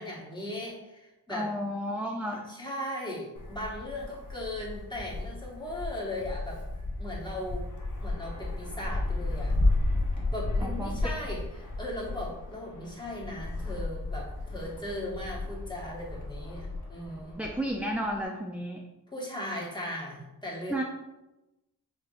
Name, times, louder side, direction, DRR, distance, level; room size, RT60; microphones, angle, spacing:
voice 1, 0.0-1.5 2.2-6.6 7.0-7.7 8.0-9.5 10.3-17.4 19.1-20.8, left 1 dB, 10° left, -4 dB, 1.4 m, -38 dB
voice 2, 1.3-2.5 10.6-11.1 17.4-18.8 20.7-20.8, equal, 5° right, 1 dB, 0.3 m, -32 dB
Wind, 3.3-18.2, left 2 dB, 50° left, 1.0 m, -33 dB
4.6 x 3.4 x 2.4 m, 1.0 s
cardioid pair, 60°, 39 cm